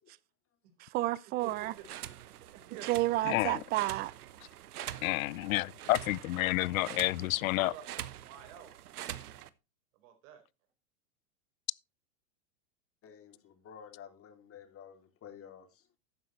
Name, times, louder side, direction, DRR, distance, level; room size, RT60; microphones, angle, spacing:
voice 1, 0.8-1.7 2.8-4.1, right 17 dB, 25° right, 0.4 m, -31 dB
sound 1, 1.4-9.5, right 12 dB, 80° right, 1.1 m, -45 dB
voice 2, 2.5-3.0 5.8-6.1 7.6-8.7 10.0-10.4, right 10 dB, 60° right, 4.5 m, -49 dB
voice 3, 3.3-3.6 5.0-7.7, left 18 dB, 65° left, 0.6 m, -30 dB
voice 4, 13.0-15.8, left 8 dB, 30° left, 3.0 m, -51 dB
12.0 x 9.4 x 3.2 m
hypercardioid pair, 120°, 44 cm